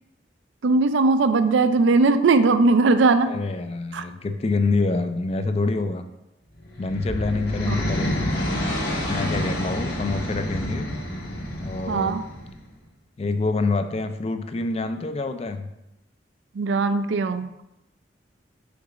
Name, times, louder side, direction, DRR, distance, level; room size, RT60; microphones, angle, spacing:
voice 1, 0.6-3.3 3.9-4.0 7.7-7.8 11.9-12.2 16.5-17.5, right 3 dB, 85° right, 11 dB, 0.4 m, -19 dB
voice 2, 3.3-6.0 6.8-8.3 9.1-10.9 11.6-12.2 13.2-15.7, left 3 dB, 35° left, 8 dB, 0.4 m, -26 dB
sound 1, 6.6-12.6, left 1 dB, 55° left, 1.3 m, -28 dB
5.2 x 3.9 x 4.8 m, 0.90 s
head